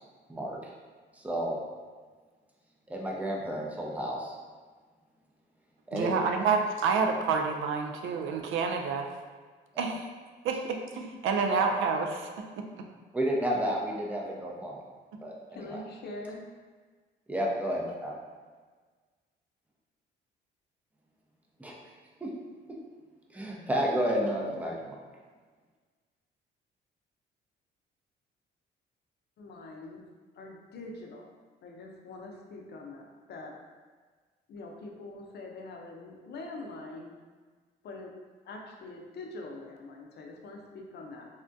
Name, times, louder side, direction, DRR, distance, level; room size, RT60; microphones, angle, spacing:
voice 1, 1.2-1.6 2.9-4.4 5.9-6.1 9.7-9.8 13.1-14.7 15.2-15.8 17.3-18.1 21.6-21.7 22.2-22.3 23.3-25.0, equal, 5° right, -2 dB, 0.5 m, -31 dB
voice 2, 5.9-9.0 9.8-10.0 10.4-12.3 12.7-12.8 15.1-15.2, right 5 dB, 80° right, 3 dB, 0.4 m, -28 dB
voice 3, 15.5-16.4 29.4-30.0 30.4-31.3 31.6-33.5 34.5-37.1 37.8-38.1 38.5-41.3, left 2 dB, 55° left, 0 dB, 0.5 m, -44 dB
3.5 x 2.2 x 2.6 m, 1.5 s
cardioid pair, 90°, 20 cm